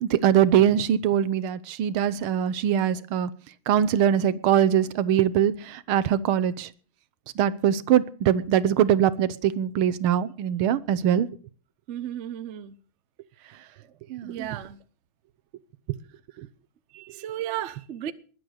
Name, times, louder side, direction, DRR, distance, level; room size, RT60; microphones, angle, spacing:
voice 1, 0.0-3.3 3.7-6.7 7.4-11.3 14.1-14.3 16.4-16.5, right 10 dB, 80° right, 1.7 m, -22 dB
voice 2, 11.9-12.7 14.2-14.8 16.9-18.1, right 11 dB, 65° right, 0.7 m, -34 dB
21.0 x 7.8 x 6.4 m
omnidirectional pair, 2.3 m